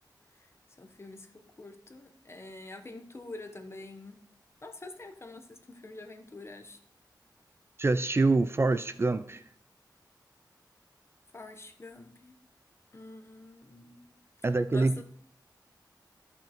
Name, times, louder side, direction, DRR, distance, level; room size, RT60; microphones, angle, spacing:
voice 1, 0.8-4.2 4.6-6.8 11.3-12.3 12.9-14.1 14.5-15.0, left 2 dB, 35° left, 0.9 m, -46 dB
voice 2, 7.8-9.4 14.4-15.0, right 3 dB, 35° right, 0.3 m, -25 dB
13.5 x 5.5 x 3.0 m
wide cardioid pair, 95°, 8 cm